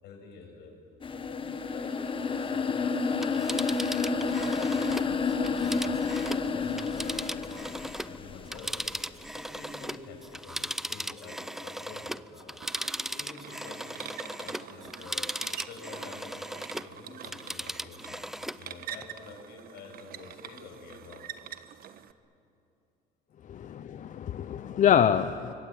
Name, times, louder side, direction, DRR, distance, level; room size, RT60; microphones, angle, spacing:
voice 1, 0.0-0.7 1.1-4.9 5.3-7.5 7.8-8.9 9.3-15.3 15.6-21.2 23.6-23.7 24.4-24.5, left 4 dB, 75° left, 2 dB, 6.9 m, -48 dB
sound 1, 1.0-9.0, left 4 dB, 30° left, 1.3 m, -30 dB
Telephone, 3.1-8.2 8.5-16.9 17.2-18.6 19.0-19.1, equal, ahead, 0.5 m, -37 dB
sound 2, 12.6-22.1, right 10 dB, 60° right, 1.3 m, -45 dB
voice 2, 23.5-25.5, left 9 dB, 50° left, 11 dB, 0.8 m, -25 dB
25.5 x 24.0 x 8.8 m, 2.7 s
cardioid pair, 110°, 17 cm